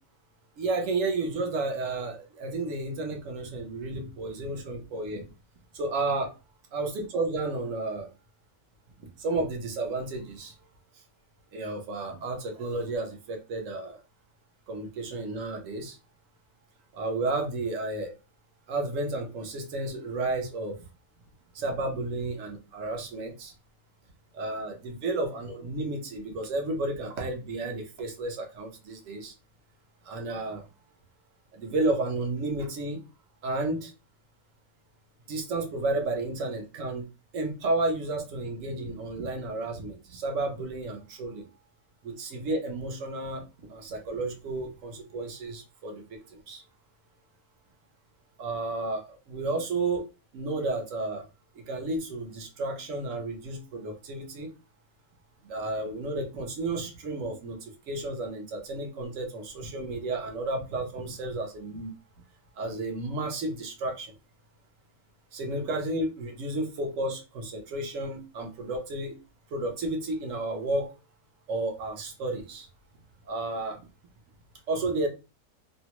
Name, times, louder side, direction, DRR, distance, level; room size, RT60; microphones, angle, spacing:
voice 1, 0.6-5.2 5.7-6.3 6.7-8.1 9.0-10.5 11.5-14.0 14.7-16.0 16.9-18.1 18.7-20.8 21.5-23.5 24.3-29.3 30.0-30.7 31.5-33.0 33.4-33.9 35.3-37.1 37.3-41.5 42.0-46.6 48.4-50.1 50.3-51.2 51.5-54.5 55.4-61.9 62.6-64.1 65.3-69.2 69.5-70.9 71.5-72.7 73.3-73.8 74.7-75.1, right 2 dB, 65° right, 3 dB, 1.0 m, -32 dB
2.8 x 2.2 x 2.9 m, 0.29 s
omnidirectional pair, 1.5 m